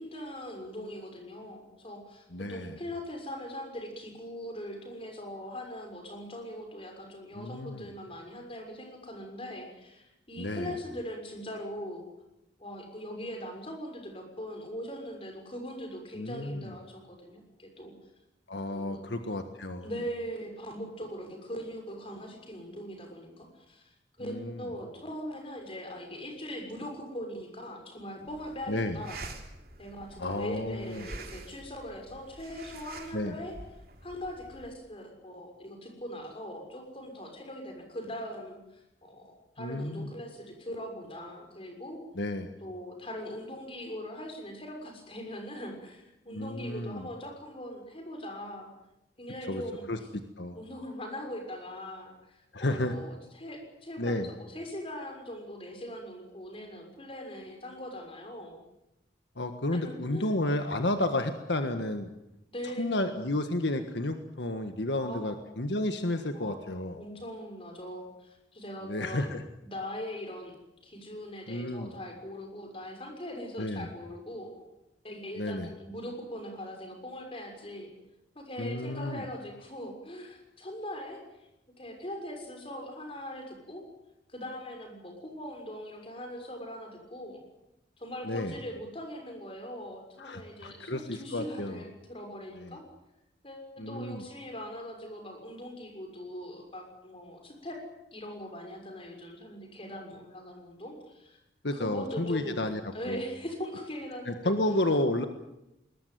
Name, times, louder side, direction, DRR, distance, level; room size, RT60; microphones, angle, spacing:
voice 1, 0.0-12.0 12.6-17.9 18.7-19.0 19.8-29.2 29.8-33.5 34.0-42.0 42.6-48.7 49.2-49.9 50.6-58.6 59.7-60.3 62.5-62.8 65.0-65.4 66.3-66.6 67.0-69.3 69.6-74.6 75.0-77.9 78.3-81.5 81.8-83.9 84.3-87.4 88.0-92.8 93.4-97.8 98.1-101.4 101.7-104.5, equal, 30° left, 4 dB, 6.4 m, -41 dB
voice 2, 2.3-2.7 7.3-7.9 10.4-10.7 16.2-16.7 18.5-19.9 24.2-24.6 28.7-29.0 30.2-31.1 33.1-33.4 39.6-40.1 42.1-42.5 46.3-47.1 49.5-49.6 49.9-50.0 50.4-50.6 52.5-52.9 54.0-54.3 59.4-62.1 62.8-67.0 68.8-69.4 71.5-71.9 73.6-73.9 75.4-75.7 78.6-79.2 88.2-88.5 90.2-91.8 92.6-92.8 93.8-94.2 101.6-103.2 104.3-105.2, left 1 dB, 75° left, 7 dB, 1.6 m, -31 dB
sound 1, 28.3-34.8, right 3 dB, 55° right, 3.5 m, -47 dB
22.0 x 20.5 x 9.5 m, 0.89 s
head